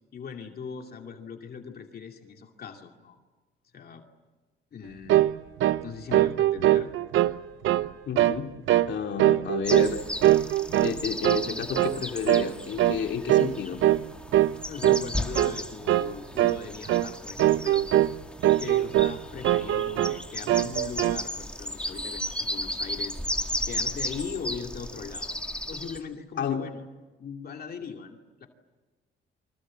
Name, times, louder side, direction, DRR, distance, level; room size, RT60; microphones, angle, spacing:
voice 1, 0.0-3.2 3.7-4.0 4.7-5.2 5.8-6.9 14.5-17.9 18.6-23.2 23.7-25.4 25.7-26.8 27.2-28.5, left 6 dB, 50° left, 3 dB, 2.5 m, -40 dB
sound 1, 5.1-5.3 5.6-5.8 6.1-7.3 7.6-7.9 8.1-8.4 8.7-8.9 9.2-9.9 10.2-11.0 11.2-11.5 11.7-12.0 12.3-12.5 12.8-13.0 13.3-13.5 13.8-14.0 14.3-14.5 14.8-15.1 15.3-15.5 15.9-16.1 16.4-16.6 16.9-17.1 17.4-18.1 18.4-19.2 19.4-20.2 20.5-21.2, right 13 dB, 85° right, 0.8 m, -22 dB
voice 2, 8.1-8.6 8.9-10.0 10.8-13.8 26.4-26.7, left 7 dB, 65° left, 4 dB, 2.7 m, -31 dB
sound 2, 9.6-26.0, left 1 dB, 5° left, 2.1 m, -35 dB
29.0 x 25.5 x 7.6 m, 1.3 s
cardioid pair, 90°, 20 cm